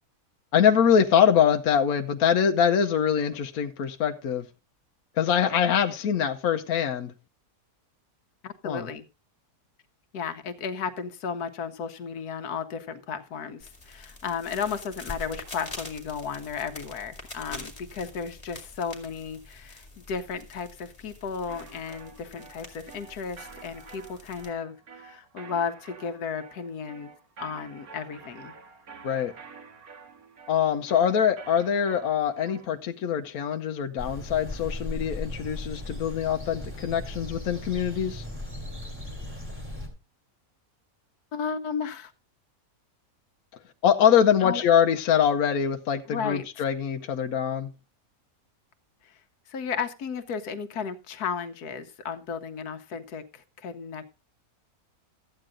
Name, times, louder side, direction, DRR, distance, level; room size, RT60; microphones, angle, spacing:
voice 1, 0.5-4.4 5.2-7.1 8.6-8.9 29.0-29.3 30.5-38.3 43.8-47.7, left 8 dB, 70° left, 1.2 m, -23 dB
voice 2, 8.4-9.0 10.1-27.1 27.4-28.5 41.3-42.1 44.4-44.6 46.1-46.5 49.0-49.2 49.5-54.1, left 6 dB, 85° left, 1.4 m, -34 dB
sound 1, 13.6-24.5, left 2 dB, 20° left, 2.3 m, -45 dB
sound 2, 21.5-32.8, right 5 dB, 70° right, 2.1 m, -49 dB
sound 3, 34.0-39.9, left 1 dB, 10° right, 3.0 m, -37 dB
13.0 x 8.9 x 3.7 m
omnidirectional pair, 1.6 m